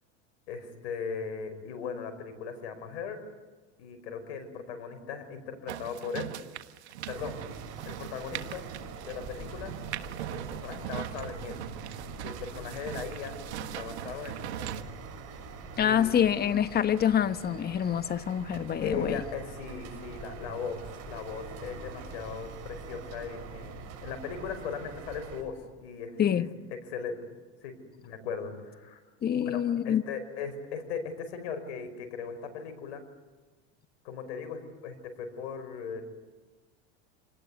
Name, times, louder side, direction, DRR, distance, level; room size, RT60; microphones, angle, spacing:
voice 1, 0.5-3.2 3.8-6.3 7.1-7.4 7.9-8.7 9.0-9.7 10.3-11.6 12.2-14.7 15.8-16.1 18.8-26.4 26.9-27.2 27.6-29.0 29.3-33.0 34.0-36.0, left 6 dB, 75° left, 5.4 m, -38 dB
sound 1, 5.7-14.8, right 11 dB, 85° right, 1.6 m, -40 dB
sound 2, 7.1-25.4, right 4 dB, 50° right, 6.7 m, -44 dB
voice 2, 15.8-19.2 26.2-26.5 29.2-30.0, left 9 dB, 30° left, 1.3 m, -26 dB
27.0 x 19.5 x 9.6 m
supercardioid pair, 105°, 33 cm